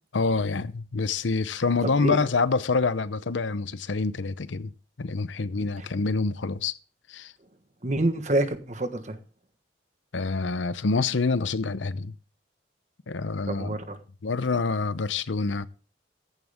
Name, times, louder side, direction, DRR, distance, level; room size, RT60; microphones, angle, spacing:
voice 1, 0.1-4.7 5.0-6.8 7.1-7.3 10.1-12.1 13.1-13.8 14.2-15.7, left 4 dB, 90° left, 0.7 m, -26 dB
voice 2, 7.8-9.2 13.5-14.0, right 1 dB, 40° right, 1.4 m, -27 dB
14.5 x 11.0 x 3.6 m
head